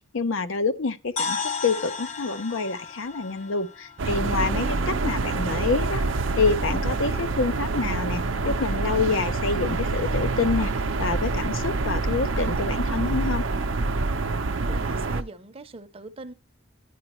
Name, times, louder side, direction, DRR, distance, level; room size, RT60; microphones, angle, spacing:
voice 1, 0.1-1.4 1.6-6.0 6.4-10.7 11.0-13.4, left 4 dB, 85° left, 0.7 m, -27 dB
sound 1, 1.2-5.1, left 5 dB, 35° left, 0.8 m, -34 dB
sound 2, 4.0-15.2, right 3 dB, 75° right, 0.6 m, -26 dB
sound 3, 6.0-12.7, equal, 60° left, 0.9 m, -40 dB
voice 2, 14.6-16.3, right 2 dB, 30° right, 0.6 m, -41 dB
10.5 x 9.7 x 3.0 m
head